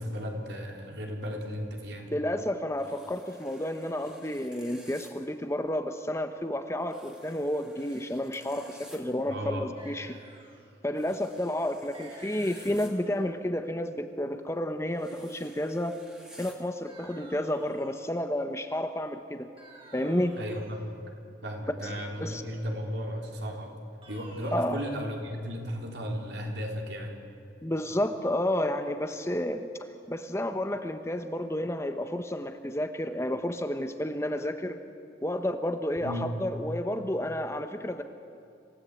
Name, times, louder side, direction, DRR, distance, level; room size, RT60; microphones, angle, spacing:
voice 1, 0.0-2.1 9.3-9.7 20.4-21.0 21.4-23.7 24.1-27.2 36.0-36.3, equal, 65° right, 1 dB, 3.8 m, -35 dB
voice 2, 2.1-10.2 10.8-15.9 16.4-19.5 19.9-20.4 21.8-21.9 22.2-22.4 24.5-24.8 27.6-29.7 30.1-34.8 35.2-38.0, left 1 dB, 15° left, 7 dB, 0.9 m, -31 dB
sound 1, 2.8-5.1 6.8-9.0 11.0-12.9 14.9-16.5, equal, 5° right, 2.2 m, -53 dB
sound 2, 9.8-10.8 11.9-13.2 16.9-18.2 19.6-20.9 24.0-24.6, right 2 dB, 30° right, 3.9 m, -52 dB
26.5 x 16.5 x 8.3 m, 2.5 s
head